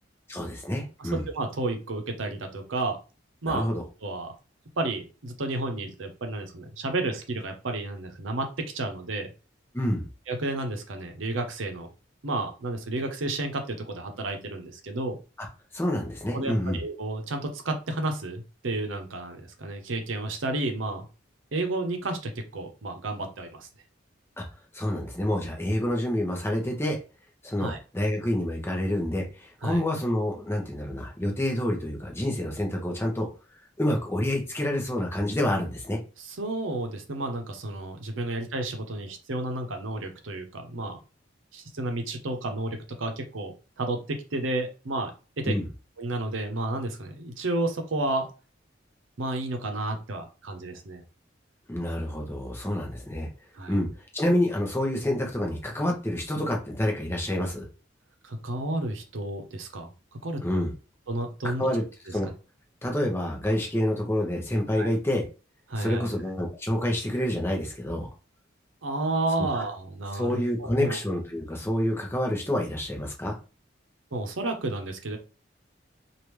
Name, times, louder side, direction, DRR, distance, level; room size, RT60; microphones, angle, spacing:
voice 1, 0.3-1.2 3.4-3.8 9.7-10.1 15.7-16.8 24.4-24.5 24.7-27.0 27.4-33.3 33.8-36.0 45.4-45.7 51.7-53.3 53.7-57.7 60.4-60.7 61.4-61.8 62.1-62.3 62.8-65.2 65.8-68.1 69.5-69.6 70.1-73.4, left 1 dB, 15° left, 1 dB, 0.7 m, -28 dB
voice 2, 1.0-3.0 3.4-3.7 4.0-4.3 4.8-9.3 10.3-11.9 12.2-15.2 16.3-21.1 21.5-23.7 27.6-27.8 29.6-29.8 36.2-41.0 41.5-45.1 45.4-45.6 46.0-48.3 49.2-51.0 53.5-53.7 58.2-59.9 60.2-60.4 61.1-61.7 64.7-64.9 65.7-66.1 68.8-71.0 74.1-75.2, right 2 dB, 90° right, 5 dB, 0.7 m, -31 dB
3.3 x 2.5 x 3.0 m, 0.33 s
head